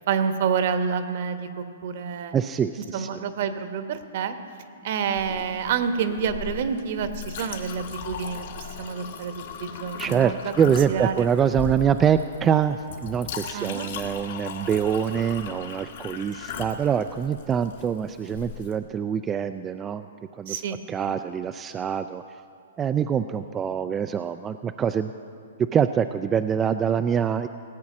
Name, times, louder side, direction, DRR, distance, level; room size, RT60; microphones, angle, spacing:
voice 1, 0.1-2.3 2.9-4.4 4.8-10.5 10.9-11.3 13.5-13.9 20.5-20.8, right 6 dB, 55° right, 9 dB, 1.1 m, -28 dB
voice 2, 2.3-3.1 10.0-20.1 20.3-20.6 20.9-22.2 22.8-25.1 25.7-27.5, right 8 dB, 20° right, 9 dB, 0.4 m, -25 dB
Chink clink, 5.1-18.7, left 7 dB, 60° left, 1.7 m, -38 dB
17.5 x 8.5 x 6.1 m, 2.5 s
hypercardioid pair, 130°, 0 cm